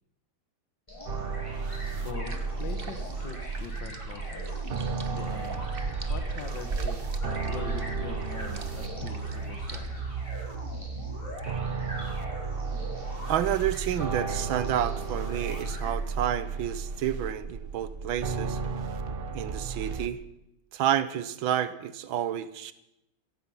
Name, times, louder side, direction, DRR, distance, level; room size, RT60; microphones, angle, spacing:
sound 1, 0.9-15.9, left 1 dB, 15° left, 6.3 m, -44 dB
sound 2, 1.1-20.1, right 4 dB, 50° right, 0.7 m, -34 dB
voice 1, 1.9-4.6 5.0-7.1 7.5-9.8, left 7 dB, 70° left, 6 dB, 1.9 m, -43 dB
sound 3, 2.1-9.9, right 3 dB, 35° right, 1.1 m, -38 dB
voice 2, 13.3-18.6 19.3-20.2 20.7-22.7, right 10 dB, 85° right, 14 dB, 1.7 m, -30 dB
16.5 x 15.0 x 5.6 m, 0.83 s
omnidirectional pair, 2.1 m